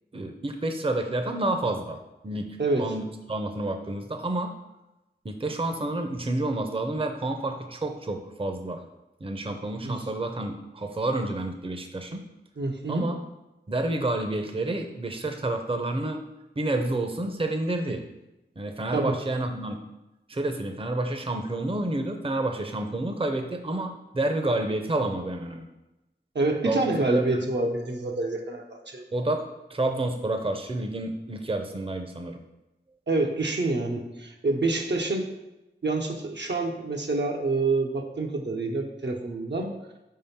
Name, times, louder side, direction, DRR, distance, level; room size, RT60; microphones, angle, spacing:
voice 1, 0.1-2.5 2.8-4.5 5.2-8.8 9.2-12.2 12.9-13.2 13.7-16.2 16.6-18.0 18.6-19.8 20.3-25.7 26.6-27.4 29.1-29.4 29.7-32.4, right 2 dB, 30° right, 5 dB, 0.6 m, -29 dB
voice 2, 12.6-13.1 18.9-19.2 26.3-29.1 33.1-35.3 35.8-39.7, right 2 dB, 75° right, 2 dB, 0.8 m, -27 dB
4.8 x 3.7 x 5.6 m, 0.97 s
wide cardioid pair, 45°, 18 cm